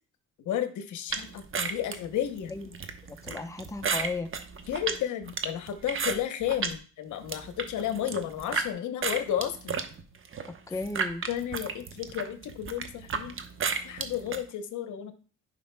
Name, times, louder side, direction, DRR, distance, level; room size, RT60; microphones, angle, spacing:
voice 1, 0.4-2.5 4.7-9.8 11.3-13.4 13.8-15.1, left 10 dB, 75° left, 9 dB, 0.9 m, -32 dB
sound 1, 1.1-6.8 7.1-8.7 9.0-14.4, right 5 dB, 45° right, 0.9 m, -33 dB
voice 2, 2.5-2.8 3.1-4.3 10.5-11.3, left 3 dB, 10° left, 6 dB, 0.7 m, -35 dB
10.5 x 5.4 x 2.2 m, 0.38 s
cardioid pair, 90°, 30 cm